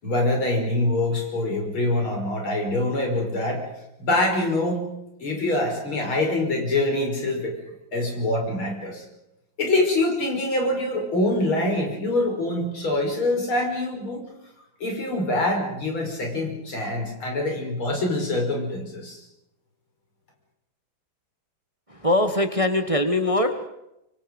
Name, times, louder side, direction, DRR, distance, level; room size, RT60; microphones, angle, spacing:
voice 1, 0.0-3.7 4.0-4.9 5.2-7.6 7.9-9.0 9.6-14.2 14.8-19.3, left 2 dB, 90° left, 2 dB, 6.2 m, -25 dB
voice 2, 21.9-23.7, left 1 dB, 20° right, 8 dB, 1.3 m, -22 dB
25.0 x 24.5 x 5.4 m, 0.86 s
omnidirectional pair, 2.2 m